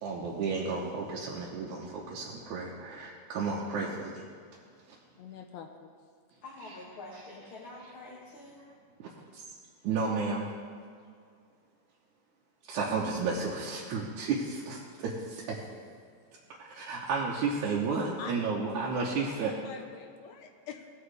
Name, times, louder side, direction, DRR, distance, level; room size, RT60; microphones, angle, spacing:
voice 1, 0.0-4.2 6.6-6.8 9.0-9.5 9.8-10.5 12.7-15.6 16.6-19.6, right 4 dB, 85° right, -4 dB, 2.4 m, -32 dB
voice 2, 5.2-5.9 18.2-20.9, left 7 dB, 75° left, 4 dB, 1.9 m, -46 dB
voice 3, 6.4-8.6, left 2 dB, 50° left, -7 dB, 2.3 m, -46 dB
18.0 x 7.0 x 3.3 m, 2.2 s
omnidirectional pair, 3.4 m